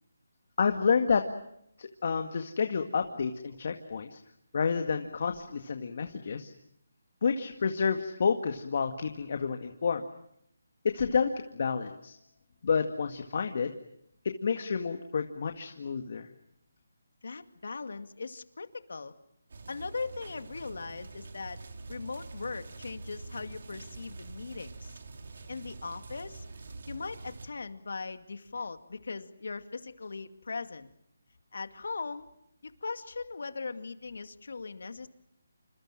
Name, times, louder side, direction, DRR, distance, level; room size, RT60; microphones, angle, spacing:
voice 1, 0.6-1.2 1.8-4.2 4.5-6.5 7.2-10.0 10.8-12.2 12.6-13.7 14.2-16.3, left 5 dB, 50° left, 5 dB, 1.9 m, -29 dB
voice 2, 17.2-19.1 19.7-21.6 21.9-25.0 25.5-26.4 26.9-30.9 31.5-32.3 32.6-35.1, left 4 dB, 70° left, 9 dB, 2.2 m, -39 dB
sound 1, 19.5-27.5, right 3 dB, 60° right, 3.5 m, -46 dB
28.0 x 26.5 x 7.6 m, 0.75 s
hypercardioid pair, 165°, 0 cm